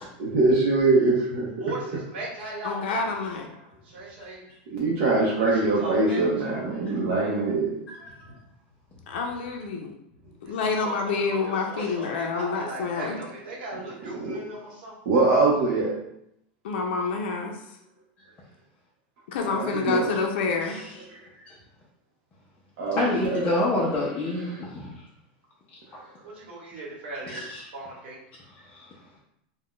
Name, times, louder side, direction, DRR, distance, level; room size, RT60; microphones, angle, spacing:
voice 1, 0.2-1.5 4.7-7.7 14.2-14.4 15.1-15.9 19.5-20.1 22.8-23.4 24.5-24.6, right 3 dB, 55° right, -4 dB, 0.6 m, -23 dB
voice 2, 1.6-3.0 3.8-4.4 5.3-6.2 10.4-15.0 26.2-27.5 27.7-28.2, right 2 dB, 85° right, -4 dB, 1.0 m, -38 dB
voice 3, 2.6-3.5 9.1-9.9 10.4-13.2 16.6-17.6 19.3-20.8, left 4 dB, 75° left, 1 dB, 0.4 m, -28 dB
voice 4, 22.9-24.9 27.3-27.6 28.7-28.9, left 2 dB, 25° left, -5 dB, 0.5 m, -27 dB
2.4 x 2.1 x 3.6 m, 0.76 s
supercardioid pair, 160°, 6 cm